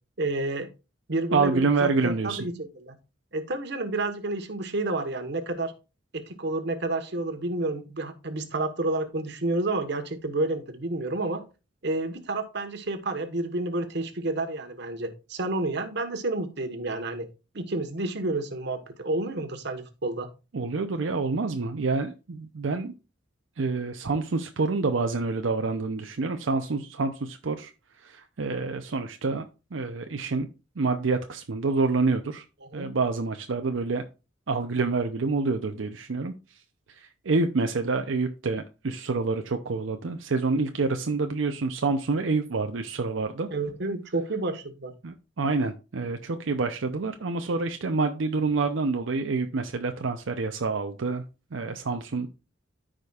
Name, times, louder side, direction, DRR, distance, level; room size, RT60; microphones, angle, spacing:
voice 1, 0.2-0.7 1.1-3.0 3.3-5.7 6.1-11.4 11.8-17.3 17.5-20.3 32.6-32.9 43.5-44.9, right 2 dB, 65° right, 7 dB, 1.2 m, -30 dB
voice 2, 1.3-2.4 20.5-22.9 23.6-27.7 28.0-29.4 29.7-30.5 30.8-32.4 32.7-34.0 34.5-36.3 37.3-43.5 45.0-51.2 51.5-52.3, right 4 dB, 90° right, 6 dB, 0.6 m, -27 dB
13.5 x 5.1 x 2.4 m, 0.30 s
head